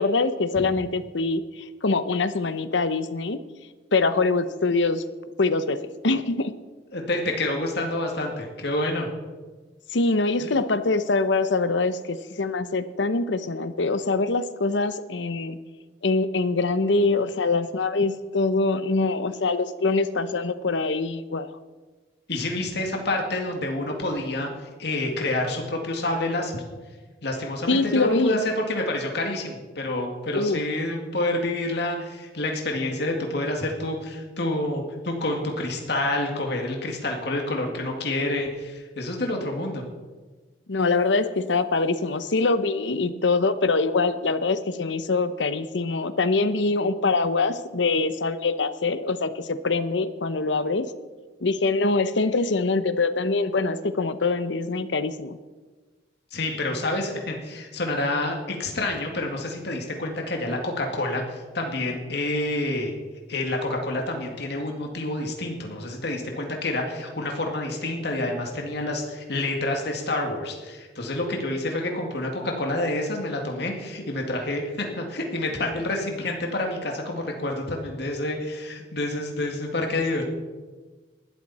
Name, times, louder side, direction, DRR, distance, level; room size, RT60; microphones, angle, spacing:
voice 1, 0.0-3.4 3.9-5.0 5.4-6.5 9.9-15.6 16.0-21.5 27.7-28.4 30.3-30.6 40.7-50.9 51.4-55.4, left 3 dB, 85° left, 12 dB, 0.9 m, -24 dB
voice 2, 6.9-9.1 10.4-10.6 22.3-26.6 27.2-39.8 56.3-62.9 63.3-80.2, left 2 dB, 65° left, 1 dB, 2.2 m, -28 dB
19.5 x 12.5 x 4.3 m, 1.3 s
head